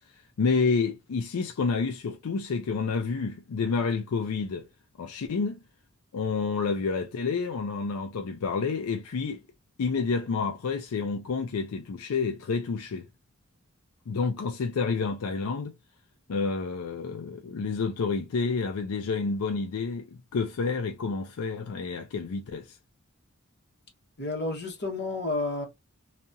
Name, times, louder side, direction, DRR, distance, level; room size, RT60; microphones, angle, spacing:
voice 1, 0.4-4.7 5.0-5.6 6.1-9.4 9.8-13.1 14.1-15.7 16.3-22.8, left 4 dB, 85° left, 0.4 m, -29 dB
voice 2, 24.2-25.6, left 2 dB, 55° left, 1.4 m, -31 dB
2.8 x 2.4 x 2.7 m
head